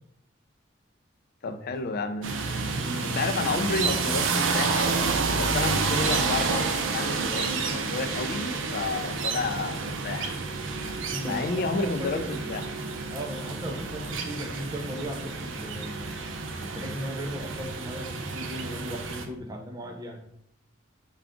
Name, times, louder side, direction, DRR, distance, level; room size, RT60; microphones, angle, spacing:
voice 1, 1.4-2.3 3.0-4.9 5.3-10.4 11.2-12.6, left 3 dB, 55° left, 7 dB, 0.4 m, -31 dB
sound 1, 2.2-19.3, right 4 dB, 75° right, 0.5 m, -29 dB
voice 2, 2.7-3.1 11.1-12.4 13.1-16.2 16.6-20.2, equal, 20° right, 1 dB, 0.5 m, -36 dB
4.8 x 2.4 x 3.5 m, 0.73 s
head